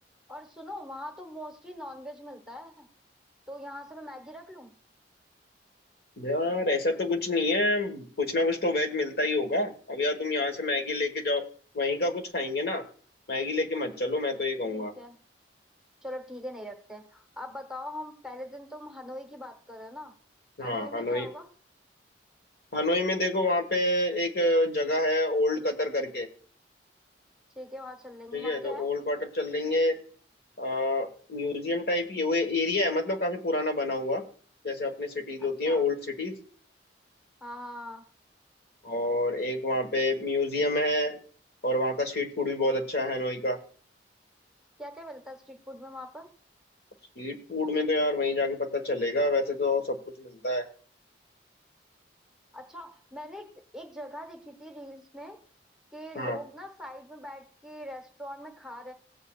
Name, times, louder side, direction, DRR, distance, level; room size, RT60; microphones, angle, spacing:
voice 1, 0.3-2.9 3.5-4.7 14.6-15.2 16.0-20.1 20.6-21.5 27.5-28.9 35.4-35.8 37.4-38.0 44.8-46.3 52.5-55.4 55.9-58.9, left 1 dB, 5° right, 4 dB, 1.1 m, -42 dB
voice 2, 6.2-11.4 11.7-12.8 13.3-14.9 20.6-21.3 22.7-26.3 28.3-30.0 30.6-34.2 34.6-36.3 38.8-41.2 41.6-43.6 47.2-50.6 56.1-56.4, left 2 dB, 60° left, 6 dB, 1.4 m, -28 dB
17.0 x 8.2 x 2.4 m, 0.43 s
head